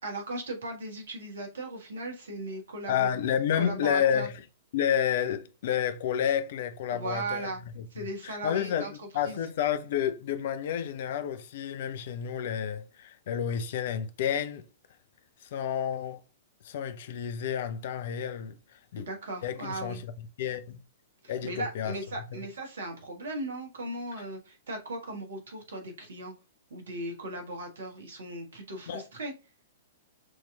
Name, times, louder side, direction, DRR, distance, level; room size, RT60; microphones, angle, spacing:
voice 1, 0.0-3.1 3.6-4.3 6.9-7.6 7.9-8.9 9.2-9.4 18.9-20.0 21.2-26.3 26.7-29.3, right 2 dB, 60° right, 1.5 m, -37 dB
voice 2, 2.9-4.4 4.7-7.5 7.7-8.9 9.1-14.6 15.4-16.2 16.6-19.1 19.4-20.1 20.4-20.8 21.3-22.0 22.3-22.5 28.9-29.0, left 9 dB, 50° left, 0.6 m, -30 dB
6.2 x 3.0 x 2.3 m
figure-of-eight pair, 110°, 0 cm